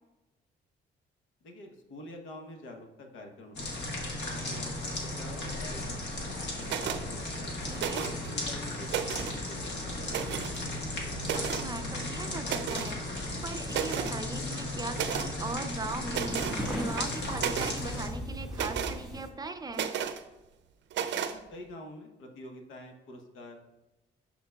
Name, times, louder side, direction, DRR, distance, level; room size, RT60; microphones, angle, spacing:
voice 1, 1.4-3.9 4.2-7.3 7.9-10.4 10.6-10.8 21.1-23.7, left 1 dB, 85° left, 2 dB, 1.1 m, -47 dB
sound 1, 3.6-18.1, left 1 dB, 60° left, 1.5 m, -36 dB
sound 2, 6.6-7.0 7.7-8.3 8.7-9.4 10.1-10.6 11.2-11.7 12.4-12.9 13.3-13.4 13.7-14.2 14.9-15.3 16.1-16.6 17.0-17.8 18.5-19.0 19.7-20.2 20.9-21.4, right 8 dB, 65° right, 0.5 m, -33 dB
voice 2, 7.5-8.0 11.3-20.0, right 2 dB, 20° right, 8 dB, 0.5 m, -39 dB
sound 3, 16.3-19.3, equal, 5° right, 1.5 m, -38 dB
11.0 x 3.8 x 2.3 m, 1.0 s
cardioid pair, 90°, 20 cm